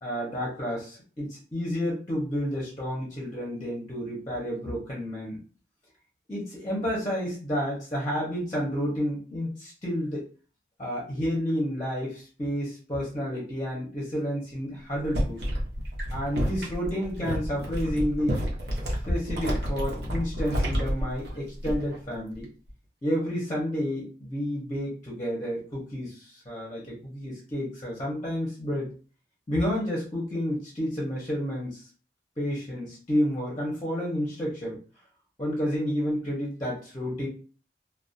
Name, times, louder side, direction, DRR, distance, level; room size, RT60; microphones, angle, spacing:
voice 1, 0.0-5.4 6.3-10.2 10.8-15.5 16.1-18.5 18.8-22.5 23.0-28.9 29.5-31.9 32.4-34.8 35.4-37.3, equal, 20° left, -3 dB, 0.7 m, -30 dB
sound 1, 14.9-22.0 22.3-22.7, equal, 65° right, 0.8 m, -30 dB
2.3 x 2.1 x 2.6 m, 0.38 s
head